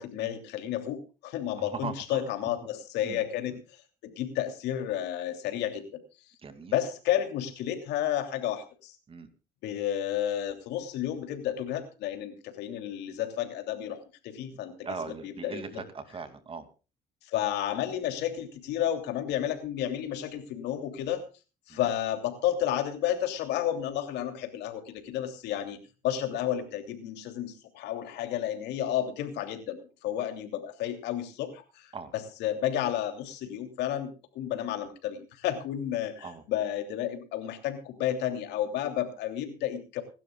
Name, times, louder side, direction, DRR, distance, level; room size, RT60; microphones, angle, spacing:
voice 1, 0.0-3.6 4.2-6.0 6.7-9.0 9.6-14.9 15.2-15.8 17.2-21.2 21.7-25.8 26.0-40.0, left 11 dB, 85° left, 7 dB, 2.9 m, -31 dB
voice 2, 1.6-2.3 3.0-3.2 3.5-3.6 6.4-6.7 9.1-9.3 14.8-16.7 21.7-21.9 31.9-32.1 36.2-36.4, right 4 dB, 35° right, 9 dB, 2.5 m, -39 dB
26.5 x 12.0 x 2.3 m, 0.32 s
cardioid pair, 110°, 17 cm